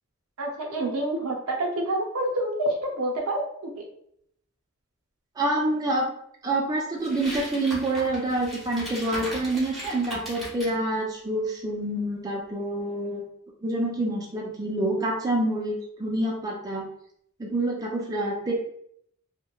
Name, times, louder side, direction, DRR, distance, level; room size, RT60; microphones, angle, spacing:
voice 1, 0.4-3.4 3.8-3.9, right 1 dB, 70° right, 1 dB, 0.6 m, -27 dB
voice 2, 5.4-6.1 6.4-13.3 13.6-16.9 17.4-18.5, right 1 dB, 15° right, -2 dB, 0.4 m, -27 dB
sound 1, 7.0-10.7, equal, ahead, 0.9 m, -38 dB
2.9 x 2.1 x 2.3 m, 0.69 s
head